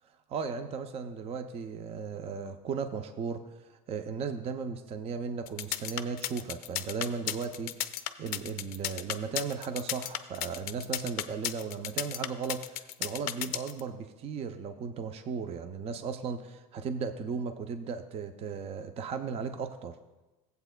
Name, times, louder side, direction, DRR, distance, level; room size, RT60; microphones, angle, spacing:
voice 1, 0.3-3.4 3.9-7.8 8.2-20.0, right 5 dB, 35° right, 8 dB, 0.5 m, -36 dB
sound 1, 5.5-13.8, left 14 dB, 55° left, 0.5 m, -34 dB
15.5 x 8.0 x 2.2 m, 1.1 s
supercardioid pair, 125°, 19 cm